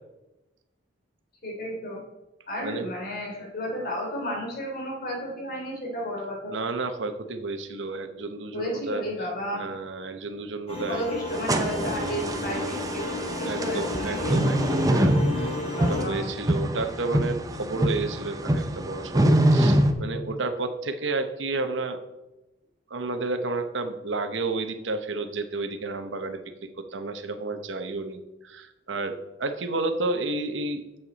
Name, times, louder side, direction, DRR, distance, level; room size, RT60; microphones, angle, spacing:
voice 1, 1.4-2.0 2.5-6.6 8.5-9.6 10.9-14.4 15.6-16.3, equal, 55° left, -1 dB, 3.1 m, -33 dB
voice 2, 6.5-9.0 9.5-11.0 11.9-12.7 13.4-22.0 22.9-26.4 26.8-28.2 28.4-30.8, right 3 dB, 80° right, 8 dB, 0.8 m, -31 dB
sound 1, 10.7-16.0, left 2 dB, 35° left, 2.1 m, -32 dB
sound 2, 11.3-19.9, right 1 dB, 20° right, 0.6 m, -25 dB
8.9 x 7.3 x 4.0 m, 1.0 s
head